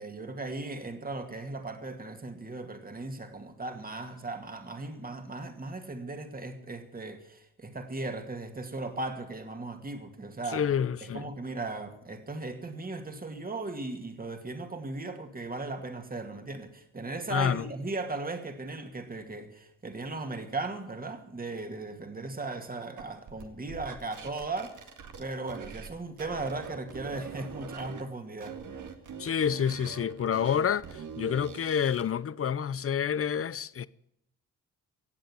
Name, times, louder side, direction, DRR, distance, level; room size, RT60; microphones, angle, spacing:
voice 1, 0.0-10.6 11.0-24.9 25.2-28.6, right 3 dB, 25° right, 2.3 m, -37 dB
voice 2, 10.5-11.3 17.3-17.7 29.2-33.9, left 8 dB, 45° left, 0.7 m, -28 dB
sound 1, 23.0-25.9 26.2-28.0 28.4-32.1, right 5 dB, 65° right, 2.0 m, -43 dB
17.0 x 7.9 x 9.7 m
cardioid pair, 75°, 33 cm